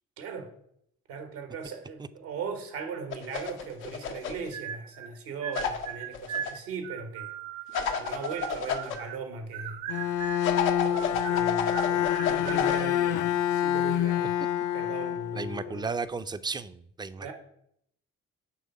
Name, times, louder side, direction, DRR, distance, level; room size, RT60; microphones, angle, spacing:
voice 1, 0.2-0.5 1.1-7.3 7.9-9.8 10.9-14.4 14.7-15.9 17.2-17.3, right 5 dB, 80° right, 1.2 m, -39 dB
sound 1, 3.1-4.5 5.5-6.5 7.7-9.0 10.4-12.8, left 6 dB, 90° left, 0.7 m, -31 dB
sound 2, 4.5-5.1 5.4-9.2 9.5-10.5 10.9-12.7, right 10 dB, 55° right, 1.0 m, -39 dB
Bowed string instrument, 9.9-15.9, left 11 dB, 50° left, 0.5 m, -27 dB
voice 2, 15.3-17.3, right 4 dB, 10° right, 0.3 m, -34 dB
8.5 x 3.4 x 5.4 m
hypercardioid pair, 40°, 40 cm